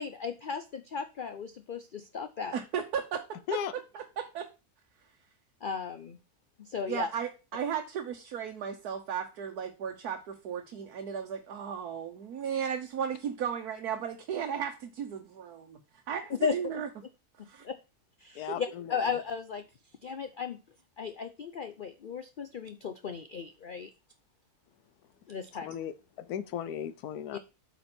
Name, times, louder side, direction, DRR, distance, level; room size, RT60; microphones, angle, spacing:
voice 1, 0.0-2.6 5.6-6.2 6.6-7.1 16.3-16.8 17.6-17.7 18.2-19.6 20.0-20.6 21.0-23.9 25.3-25.8 27.3-27.4, left 6 dB, 50° left, 0.6 m, -35 dB
voice 2, 2.5-3.6 3.9-4.5 6.9-15.8 16.1-16.9 17.5-17.6, right 8 dB, 80° right, 1.5 m, -35 dB
voice 3, 18.3-19.0 25.6-27.4, left 9 dB, 80° left, 1.3 m, -36 dB
8.7 x 5.8 x 4.4 m
omnidirectional pair, 1.6 m